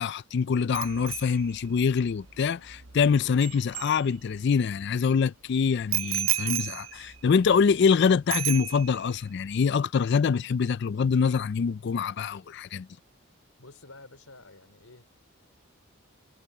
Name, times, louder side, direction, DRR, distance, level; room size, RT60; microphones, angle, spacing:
voice 1, 0.0-12.9, left 6 dB, 55° left, 0.3 m, -25 dB
Bicycle bell, 0.7-4.6 5.9-8.0 8.3-9.2 9.5-9.7, right 14 dB, 70° right, 1.2 m, -34 dB
voice 2, 13.6-15.1, left 2 dB, 85° left, 4.0 m, -50 dB
head